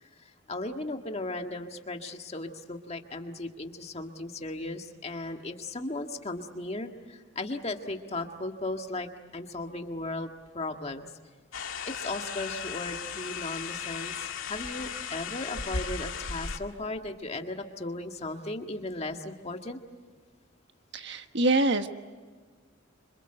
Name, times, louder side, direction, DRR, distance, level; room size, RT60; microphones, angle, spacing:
voice 1, 0.2-11.1 11.8-19.8, left 2 dB, 30° left, 4 dB, 1.8 m, -36 dB
sound 1, 11.5-16.6, left 6 dB, 90° left, 2.0 m, -36 dB
voice 2, 20.9-21.9, right 2 dB, 60° right, 7 dB, 1.4 m, -25 dB
27.0 x 26.0 x 8.0 m, 1.5 s
head